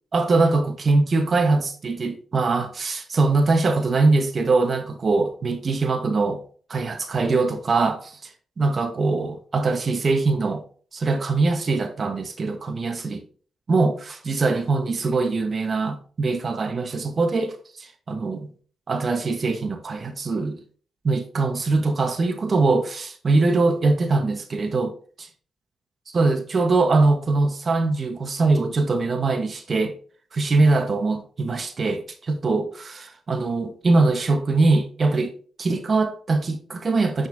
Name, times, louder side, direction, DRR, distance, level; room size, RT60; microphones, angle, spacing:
voice 1, 0.1-6.4 6.7-8.1 8.6-10.6 10.9-13.2 13.7-18.5 18.9-20.6 21.0-25.3 26.1-29.9 30.3-37.3, right 3 dB, 50° right, 1.1 m, -22 dB
9.2 x 4.2 x 2.6 m
supercardioid pair, 55°, 0 cm